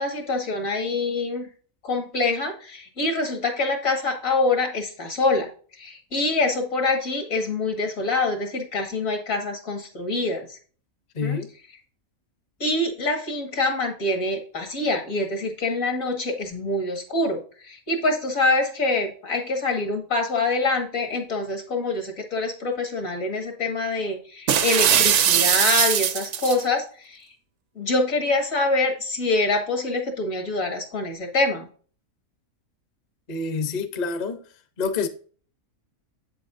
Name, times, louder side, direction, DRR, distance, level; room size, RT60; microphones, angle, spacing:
voice 1, 0.0-1.5 1.8-10.6 11.2-11.4 12.6-27.3 27.8-31.7, left 2 dB, 70° left, 2.2 m, -25 dB
voice 2, 11.1-11.5 33.3-34.4 34.8-35.1, left 4 dB, 40° left, 0.7 m, -27 dB
sound 1, 24.5-26.6, right 9 dB, 65° right, 0.9 m, -20 dB
8.1 x 7.4 x 2.6 m
omnidirectional pair, 1.5 m